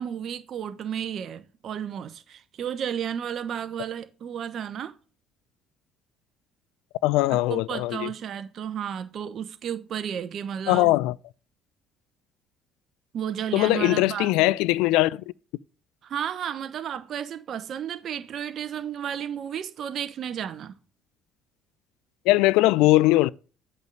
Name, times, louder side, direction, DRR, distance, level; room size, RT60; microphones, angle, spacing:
voice 1, 0.0-4.9 7.3-10.9 13.1-14.3 16.0-20.7, right 9 dB, 55° right, 0.7 m, -33 dB
voice 2, 7.0-8.1 10.7-11.2 13.5-15.2 22.3-23.3, left 18 dB, 75° left, 0.3 m, -20 dB
8.2 x 3.4 x 6.4 m
hypercardioid pair, 60°, 0 cm